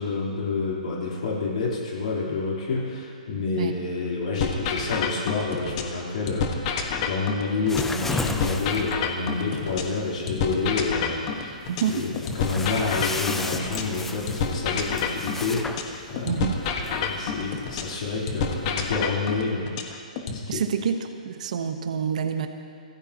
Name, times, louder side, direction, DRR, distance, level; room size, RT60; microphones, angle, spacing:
voice 1, 0.0-11.6 11.9-16.4 16.8-19.8 20.3-20.6, left 4 dB, 60° left, -4 dB, 3.7 m, -29 dB
sound 1, 4.4-6.0 6.3-10.0 10.3-14.0 14.3-18.0 18.3-20.4, left 6 dB, 35° left, 1.5 m, -29 dB
sound 2, 7.7-18.9, left 3 dB, 5° left, 0.6 m, -36 dB
voice 2, 11.7-12.1 16.2-16.6 20.5-22.5, right 7 dB, 60° right, 6 dB, 1.1 m, -27 dB
25.0 x 17.0 x 3.0 m, 2.4 s
hypercardioid pair, 150°, 4 cm